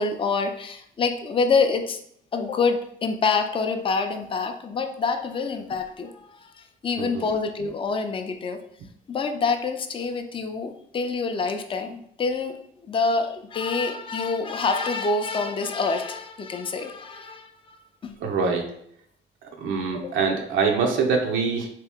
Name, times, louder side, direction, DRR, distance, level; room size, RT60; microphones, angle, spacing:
voice 1, 0.0-2.0 2.3-8.6 9.1-18.2 19.9-20.1, left 4 dB, 25° left, 6 dB, 0.4 m, -26 dB
voice 2, 18.2-18.7 19.4-21.7, right 5 dB, 85° right, 2 dB, 0.6 m, -24 dB
2.8 x 2.6 x 3.5 m, 0.69 s
cardioid pair, 90°, 20 cm